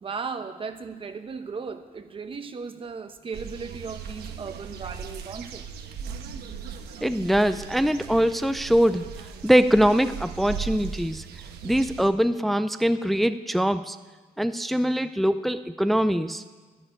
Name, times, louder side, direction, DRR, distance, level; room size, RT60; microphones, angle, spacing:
voice 1, 0.0-5.8, right 5 dB, 30° right, 8 dB, 1.2 m, -36 dB
sound 1, 3.3-12.1, right 6 dB, 70° right, 1.3 m, -38 dB
voice 2, 7.0-9.1 9.4-11.2 11.6-14.0 14.4-16.4, equal, ahead, 11 dB, 0.5 m, -22 dB
11.0 x 10.5 x 8.9 m, 1.3 s
cardioid pair, 110°, 17 cm